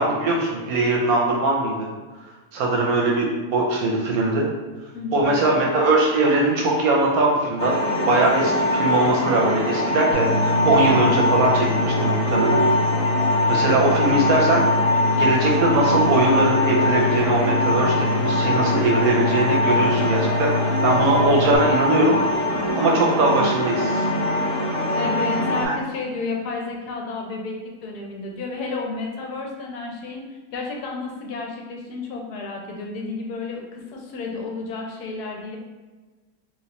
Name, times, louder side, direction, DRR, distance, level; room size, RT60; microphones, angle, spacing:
voice 1, 0.0-1.9 2.5-4.5 5.1-7.7 8.1-12.6 13.5-14.6 15.2-22.2 22.8-24.1 25.6-25.7, right 2 dB, 70° right, -1 dB, 0.9 m, -21 dB
voice 2, 4.9-5.3 25.0-27.6 27.8-35.6, left 3 dB, 75° left, 0 dB, 1.0 m, -31 dB
sound 1, 7.6-25.7, left 1 dB, 50° left, 1.0 m, -22 dB
sound 2, 10.1-21.6, left 3 dB, 90° right, 1.2 m, -27 dB
3.0 x 2.9 x 2.8 m, 1.3 s
omnidirectional pair, 1.8 m